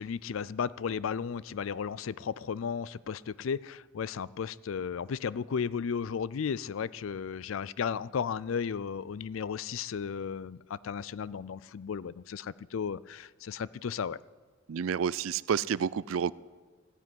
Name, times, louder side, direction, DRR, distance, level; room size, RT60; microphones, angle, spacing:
voice 1, 0.0-14.2, left 6 dB, 75° left, 20 dB, 0.4 m, -34 dB
voice 2, 14.7-16.3, right 7 dB, 75° right, 20 dB, 0.4 m, -29 dB
14.0 x 9.9 x 9.4 m, 1.4 s
head